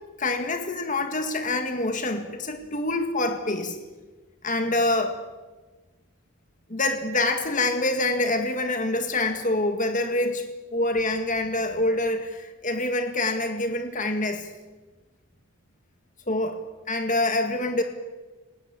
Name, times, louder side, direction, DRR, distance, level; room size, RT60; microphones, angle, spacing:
voice 1, 0.2-3.8 4.4-5.2 6.7-14.5 16.3-16.6 16.9-17.8, left 2 dB, 35° left, 6 dB, 2.1 m, -26 dB
29.5 x 18.5 x 8.7 m, 1.3 s
head